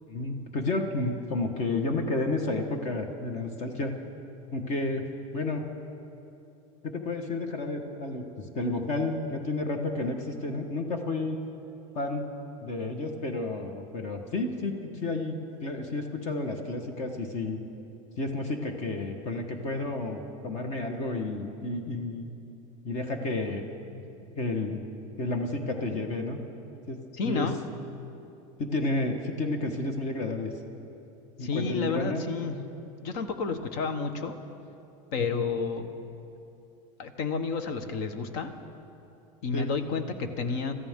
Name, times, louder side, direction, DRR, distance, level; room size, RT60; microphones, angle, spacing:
voice 1, 0.1-3.9 4.5-5.0 5.3-5.6 6.8-11.4 11.9-12.2 12.6-17.6 18.2-22.3 22.8-24.0 24.4-24.8 25.2-26.4 26.9-27.0 27.2-27.5 28.6-30.5 31.4-32.2 35.3-35.5 39.5-39.7, left 2 dB, 40° left, 5 dB, 1.4 m, -31 dB
voice 2, 27.1-27.6 31.4-32.6 33.0-34.3 35.1-35.9 37.0-38.5 39.4-40.7, left 5 dB, 60° left, 9 dB, 1.3 m, -30 dB
26.0 x 14.0 x 3.7 m, 2.8 s
supercardioid pair, 145°, 17 cm